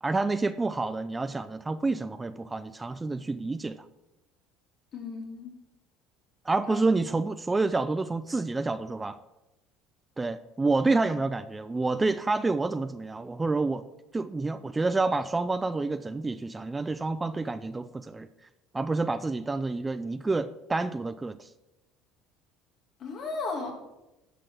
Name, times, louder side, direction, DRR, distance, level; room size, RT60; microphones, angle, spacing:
voice 1, 0.0-3.8 6.5-9.2 10.2-13.9 14.1-18.3 18.7-21.5, right 3 dB, 15° right, 13 dB, 0.4 m, -28 dB
voice 2, 4.9-5.5 6.7-6.9 23.0-23.7, left 3 dB, 45° left, 2 dB, 2.3 m, -35 dB
11.0 x 5.0 x 5.9 m, 0.98 s
supercardioid pair, 105°, 0 cm